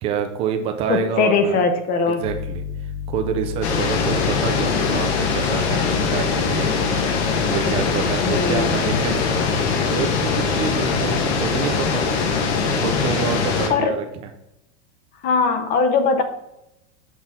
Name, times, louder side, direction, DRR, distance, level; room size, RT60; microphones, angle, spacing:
voice 1, 0.0-1.6 2.1-6.9 7.4-9.4 9.8-12.0 12.7-14.1, right 7 dB, 15° right, 6 dB, 0.4 m, -27 dB
voice 2, 0.9-2.2 8.2-8.8 13.7-13.9 15.2-16.2, left 4 dB, 25° left, 7 dB, 0.6 m, -20 dB
Piano, 2.2-13.5, left 9 dB, 80° left, 1.6 m, -34 dB
sound 1, 3.6-13.7, left 5 dB, 60° left, 1.2 m, -22 dB
6.3 x 5.5 x 3.7 m, 0.84 s
supercardioid pair, 165°, 36 cm